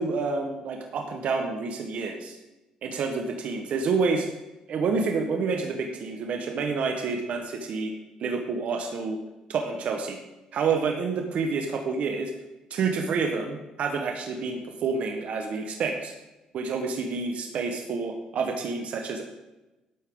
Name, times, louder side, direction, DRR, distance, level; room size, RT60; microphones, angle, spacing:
voice 1, 0.0-2.4 2.8-4.3 4.7-7.9 8.2-9.2 9.5-10.2 10.5-12.3 12.7-16.1 16.5-19.2, right 4 dB, 65° right, 3 dB, 1.3 m, -28 dB
13.0 x 8.5 x 3.9 m, 1.0 s
cardioid pair, 100°, 2 cm